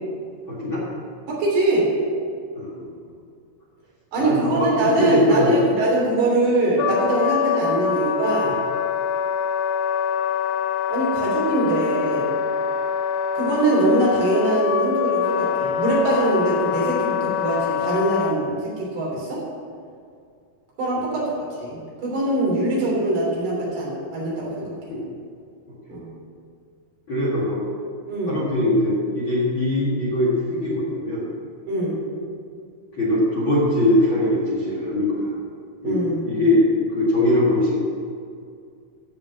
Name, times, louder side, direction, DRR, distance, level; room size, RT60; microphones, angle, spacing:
voice 1, 0.5-0.8 2.6-3.1 4.2-5.6 21.0-21.1 24.9-25.1 27.1-27.7 28.3-31.3 33.0-35.3 35.8-36.6 36.9-37.8, left 1 dB, 40° left, -6 dB, 1.9 m, -22 dB
voice 2, 1.3-1.9 4.1-8.5 10.9-12.3 13.4-19.4 20.8-21.2 21.6-24.7 25.9-26.1 28.1-28.4 31.7-32.0 35.8-36.2, right 2 dB, 75° right, -5 dB, 5.3 m, -22 dB
Wind instrument woodwind instrument, 6.8-18.4, left 8 dB, 85° left, 2.8 m, -24 dB
14.5 x 5.2 x 7.4 m, 2.3 s
omnidirectional pair, 4.8 m